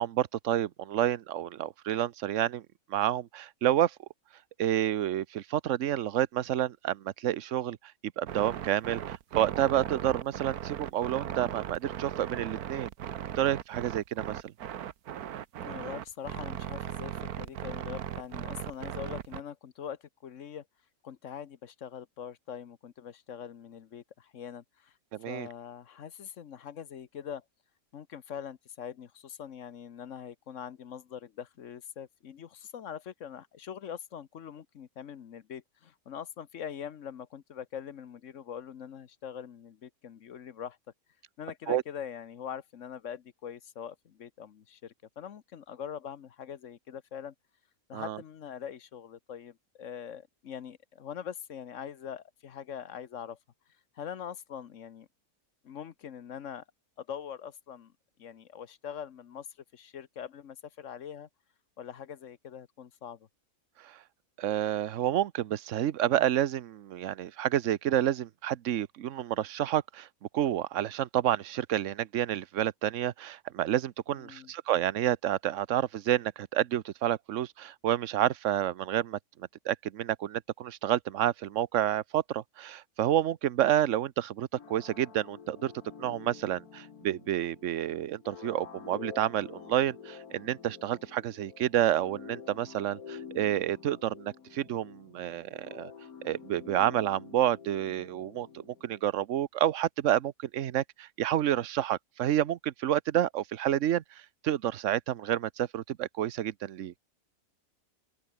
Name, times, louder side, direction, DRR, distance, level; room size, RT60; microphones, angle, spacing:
voice 1, 0.0-2.6 2.9-3.9 4.6-7.8 8.2-12.9 13.4-14.5 25.1-25.5 41.7-41.8 47.9-48.2 63.8-64.0 64.4-70.1 70.3-79.2 79.6-85.7 86.0-95.9 96.2-104.0 104.4-106.9, right 12 dB, 60° right, 1.1 m, -29 dB
sound 1, 8.3-19.4, right 10 dB, 80° right, 1.5 m, -37 dB
voice 2, 15.6-20.6 21.0-24.9 25.2-27.4 27.9-40.8 41.4-47.3 47.9-53.4 53.9-55.1 55.6-56.6 57.0-57.9 58.2-59.5 59.7-61.3 61.8-63.3 74.1-74.5, left 8 dB, 60° left, 1.3 m, -43 dB
sound 2, 84.6-99.1, left 6 dB, 75° left, 2.1 m, -48 dB
open air
omnidirectional pair, 1.6 m